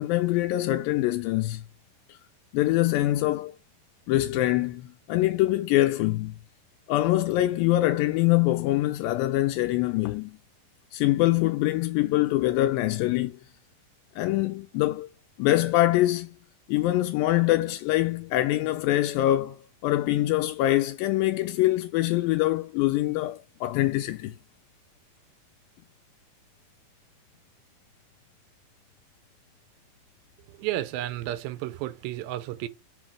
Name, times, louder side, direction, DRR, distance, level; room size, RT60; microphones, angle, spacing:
voice 1, 0.0-1.6 2.1-2.2 2.5-3.5 4.1-6.4 6.9-10.4 10.9-13.4 14.2-15.1 15.4-16.4 16.7-19.6 19.8-24.3, left 16 dB, 85° left, 2.3 m, -24 dB
voice 2, 30.4-32.7, right 14 dB, 90° right, 2.5 m, -32 dB
6.2 x 4.1 x 4.7 m
omnidirectional pair, 4.1 m